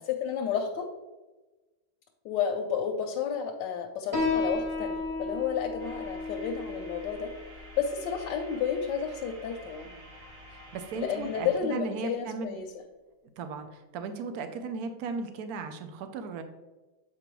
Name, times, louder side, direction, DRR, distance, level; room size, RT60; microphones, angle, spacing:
voice 1, 0.1-0.9 2.2-7.3 7.8-10.0 10.9-12.8, left 7 dB, 90° left, 2 dB, 1.3 m, -31 dB
Piano, 4.1-11.2, left 3 dB, 15° right, 1.1 m, -35 dB
sound 1, 5.8-11.6, right 1 dB, 35° right, 1.3 m, -50 dB
voice 2, 10.7-12.6 13.4-16.4, right 4 dB, 70° right, 8 dB, 1.1 m, -36 dB
7.6 x 4.5 x 3.0 m, 1.1 s
omnidirectional pair, 1.8 m